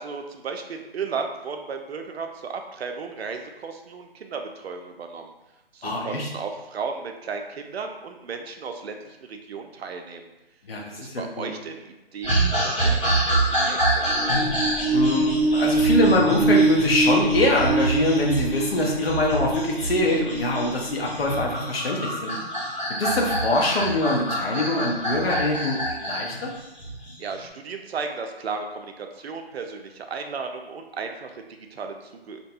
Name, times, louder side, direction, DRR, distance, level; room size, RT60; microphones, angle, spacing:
voice 1, 0.0-5.3 5.7-10.3 11.0-14.3 27.2-32.4, right 5 dB, 80° right, 5 dB, 0.5 m, -35 dB
voice 2, 5.8-6.3 10.7-11.5 14.9-22.4 23.0-26.5, left 2 dB, 75° left, -1 dB, 0.7 m, -24 dB
sound 1, 12.2-27.4, right 1 dB, 30° left, 1.1 m, -27 dB
sound 2, 14.0-21.6, right 3 dB, 5° left, 0.9 m, -25 dB
2.7 x 2.2 x 2.6 m, 1.0 s
hypercardioid pair, 180°, 31 cm